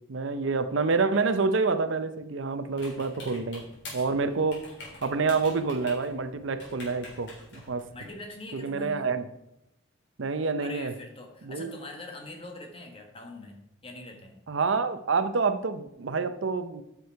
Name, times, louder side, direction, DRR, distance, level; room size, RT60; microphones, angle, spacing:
voice 1, 0.1-3.6 3.9-4.6 5.0-7.9 8.5-9.2 10.2-10.9 11.4-11.8 14.5-16.8, right 4 dB, 75° right, 11 dB, 0.6 m, -27 dB
sound 1, 2.7-8.1, left 2 dB, 60° left, 3.7 m, -46 dB
voice 2, 7.9-9.1 10.6-14.4, left 1 dB, 30° left, 3 dB, 1.4 m, -43 dB
9.5 x 6.2 x 4.6 m, 0.86 s
head